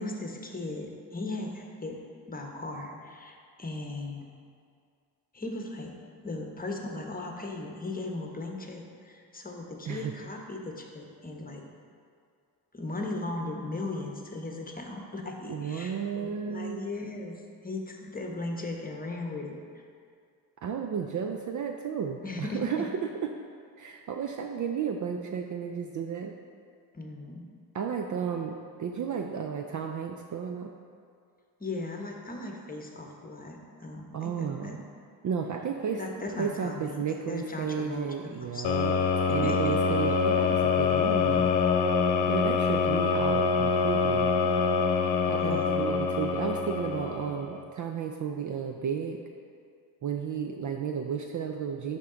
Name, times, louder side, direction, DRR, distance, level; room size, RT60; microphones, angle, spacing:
voice 1, 0.0-2.0 2.3-4.3 5.3-5.9 6.2-11.6 12.7-19.8 22.2-22.6 26.9-27.5 31.6-34.8 36.0-39.0 39.4-39.6 45.4-45.8, left 2 dB, 15° left, 1 dB, 1.1 m, -37 dB
voice 2, 15.5-16.8 20.6-23.4 23.8-26.3 27.7-30.7 34.1-34.8 35.2-36.0 36.4-39.0 39.2-41.5 42.2-44.3 45.3-49.2 50.0-52.0, right 7 dB, 40° right, 4 dB, 0.5 m, -33 dB
sound 1, 38.6-47.6, left 5 dB, 55° left, 0.8 m, -25 dB
Wind instrument woodwind instrument, 41.0-46.7, left 2 dB, 15° right, 1.7 m, -37 dB
10.5 x 3.7 x 3.8 m, 2.2 s
supercardioid pair, 60°, 49 cm